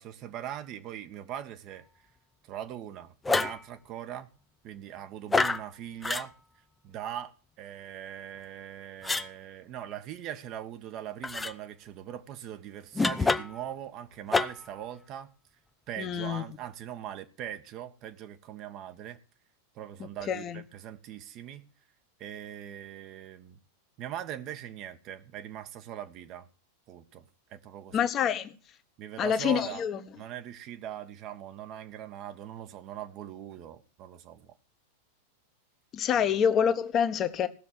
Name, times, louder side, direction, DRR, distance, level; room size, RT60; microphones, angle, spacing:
voice 1, 0.0-1.8 2.4-4.3 4.6-6.3 6.8-15.3 15.9-19.2 19.7-21.7 22.2-23.6 24.0-26.5 26.9-27.2 27.5-28.1 29.0-29.8 30.2-34.5 36.1-36.2, right 10 dB, 40° right, 1.3 m, -41 dB
sound 1, 3.2-3.6 5.3-5.6 6.0-6.3 9.0-9.3 11.2-11.5 12.9-13.6 14.3-14.7, left 3 dB, 10° left, 0.7 m, -27 dB
voice 2, 16.0-16.4 20.3-20.6 27.9-28.5 29.2-30.0 35.9-37.5, left 8 dB, 30° left, 1.4 m, -27 dB
17.0 x 6.8 x 7.8 m
figure-of-eight pair, 90°, 0 cm